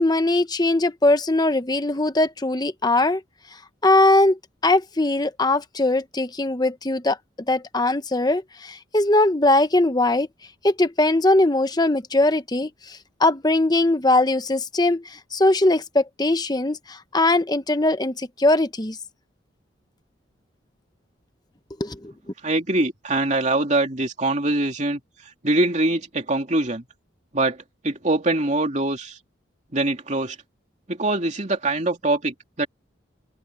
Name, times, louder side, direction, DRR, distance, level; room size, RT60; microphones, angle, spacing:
voice 1, 0.0-3.2 3.8-7.2 7.5-10.3 10.6-19.0 21.8-22.1, left 2 dB, 20° left, 0.9 m, -20 dB
voice 2, 22.4-25.0 25.4-26.8 27.3-27.6 27.8-29.2 29.7-30.4 30.9-32.7, right 2 dB, 35° right, 2.8 m, -23 dB
open air
head